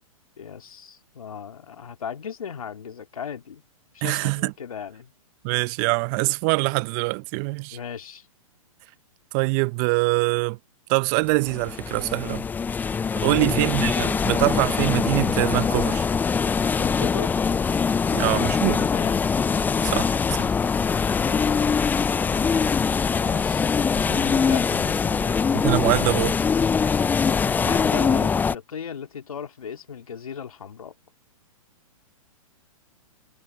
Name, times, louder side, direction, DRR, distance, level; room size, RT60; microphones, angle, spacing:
voice 1, 0.4-3.6 3.9-5.1 7.7-8.3 13.2-13.6 16.8-17.3 18.0-19.2 21.2-21.8 23.2-25.4 27.2-30.9, left 7 dB, 75° left, 2.7 m, -36 dB
voice 2, 4.0-4.5 5.4-7.8 9.3-10.6 10.9-12.5 13.2-16.1 18.1-18.8 19.8-20.6 25.6-26.4, right 30 dB, 35° right, 0.9 m, -24 dB
sound 1, 11.3-28.5, left 6 dB, 10° left, 0.6 m, -23 dB
hypercardioid pair, 120°, 18 cm